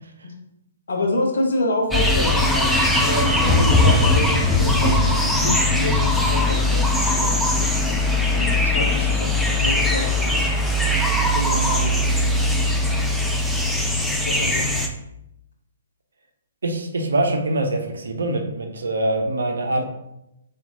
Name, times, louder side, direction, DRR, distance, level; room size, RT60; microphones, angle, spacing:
voice 1, 0.9-2.7 3.0-7.7 8.3-10.5 11.3-13.1 14.2-14.9, left 1 dB, 65° left, 1 dB, 1.0 m, -27 dB
sound 1, 1.9-14.9, left 1 dB, ahead, 0.4 m, -20 dB
voice 2, 16.6-19.8, right 2 dB, 70° right, 4 dB, 0.7 m, -24 dB
4.3 x 3.4 x 2.8 m, 0.83 s
figure-of-eight pair, 125°, 0 cm